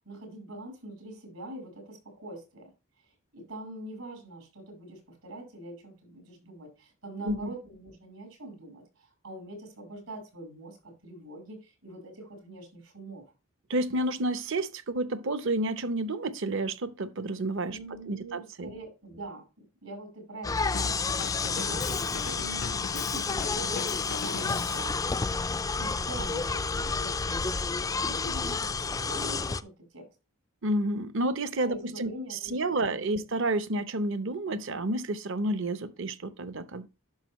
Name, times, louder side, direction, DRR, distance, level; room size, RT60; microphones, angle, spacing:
voice 1, 0.1-2.7 3.0-13.3 17.7-19.5 19.8-25.0 25.8-30.1 31.6-33.2, right 1 dB, 80° right, 5.7 m, -44 dB
voice 2, 13.7-17.8 18.1-18.7 30.6-36.9, right 1 dB, 60° right, 0.8 m, -30 dB
sound 1, 20.4-29.6, left 4 dB, 15° left, 0.3 m, -30 dB
Drum kit, 20.7-24.9, left 6 dB, 80° left, 0.6 m, -39 dB
10.5 x 6.4 x 3.0 m
head